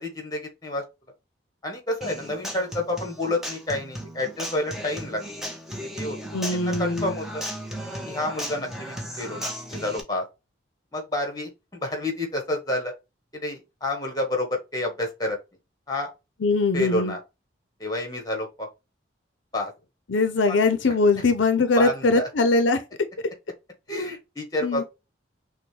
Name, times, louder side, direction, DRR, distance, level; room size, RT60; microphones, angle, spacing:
voice 1, 0.0-0.8 1.6-5.2 5.8-6.2 6.5-7.4 8.1-10.2 10.9-11.5 11.8-12.9 13.3-15.4 15.9-16.1 16.7-17.2 17.8-18.7 19.5-19.7 20.5-20.6 21.8-22.3 23.9-24.8, left 1 dB, 20° left, 1.2 m, -29 dB
Human voice / Acoustic guitar, 2.0-10.0, equal, ahead, 0.8 m, -35 dB
voice 2, 6.3-7.1 16.4-17.1 20.1-22.8 23.9-24.1 24.6-24.8, left 3 dB, 75° left, 0.6 m, -22 dB
6.0 x 2.2 x 3.2 m
head